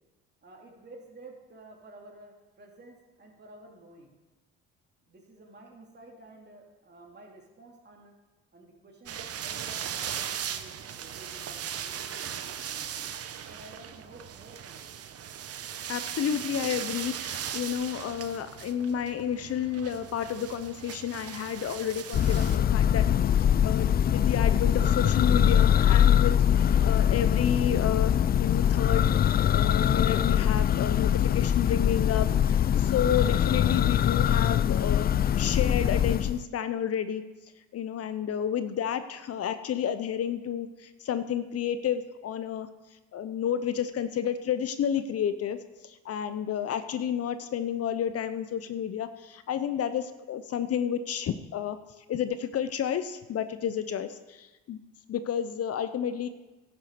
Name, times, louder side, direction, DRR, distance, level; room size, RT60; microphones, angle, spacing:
voice 1, 0.4-4.2 5.1-8.1 8.5-13.1 13.4-15.0, right 2 dB, 35° right, 0 dB, 3.3 m, -51 dB
sound 1, 9.1-22.6, right 9 dB, 50° right, 1.0 m, -38 dB
voice 2, 15.9-23.1 23.6-35.1 35.4-37.2 37.7-42.7 43.1-45.6 46.0-51.8 52.1-54.8 55.1-56.3, left 9 dB, 50° left, 11 dB, 0.8 m, -31 dB
Church bell, 22.1-36.4, left 9 dB, 30° left, 0.4 m, -23 dB
11.5 x 7.4 x 6.7 m, 1.1 s
supercardioid pair, 70°, 30 cm